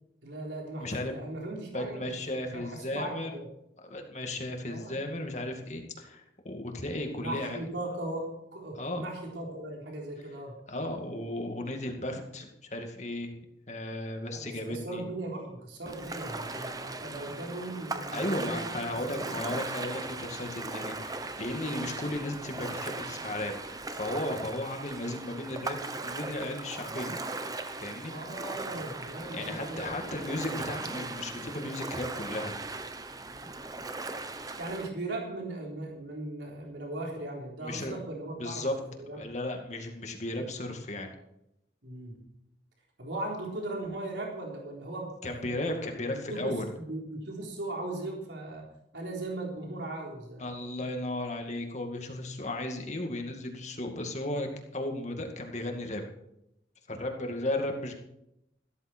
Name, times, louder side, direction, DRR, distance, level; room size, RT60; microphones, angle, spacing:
voice 1, 0.2-3.5 4.6-5.0 7.2-10.6 14.3-18.6 18.9-19.0 28.1-30.0 34.6-39.2 41.8-42.2 43.0-45.6 46.3-48.7 48.9-51.0, right 2 dB, 85° right, -1 dB, 3.8 m, -38 dB
voice 2, 0.8-1.1 1.7-3.4 3.8-7.6 8.7-9.1 10.7-13.3 13.7-15.0 18.1-25.8 26.0-27.1 27.8-28.1 29.3-32.5 37.6-38.0 38.4-38.7 39.1-41.1 45.2-46.7 50.4-56.0 56.9-57.9, left 1 dB, 40° left, 3 dB, 2.2 m, -35 dB
Ocean, 15.9-34.9, right 3 dB, 20° right, 0.9 m, -38 dB
14.5 x 13.0 x 4.5 m, 0.81 s
head